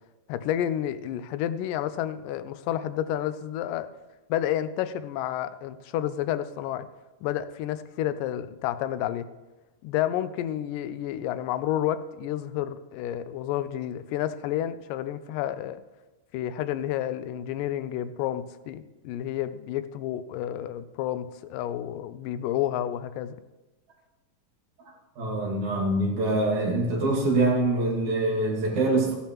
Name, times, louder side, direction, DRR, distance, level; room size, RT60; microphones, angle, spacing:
voice 1, 0.3-3.9 4.3-6.9 7.2-9.3 9.8-15.8 16.3-23.4, left 11 dB, 90° left, 13 dB, 2.2 m, -30 dB
voice 2, 25.2-29.1, right 2 dB, 65° right, -1 dB, 3.1 m, -24 dB
14.5 x 8.5 x 3.0 m, 1.1 s
omnidirectional pair, 3.8 m